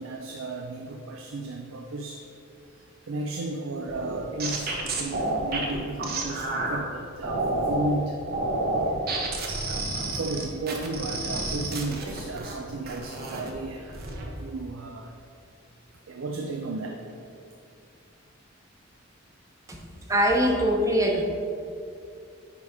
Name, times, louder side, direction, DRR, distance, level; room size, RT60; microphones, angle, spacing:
voice 1, 0.0-2.2 3.1-8.2 9.6-15.1 16.1-17.1, right 2 dB, 80° right, 3 dB, 0.5 m, -34 dB
sound 1, 3.9-6.8 7.2-7.9 8.3-12.5 12.8-13.5 13.9-14.2, right 2 dB, 50° right, 1.0 m, -29 dB
voice 2, 20.1-21.2, equal, 15° right, 0 dB, 0.9 m, -22 dB
9.7 x 3.4 x 4.9 m, 2.5 s
head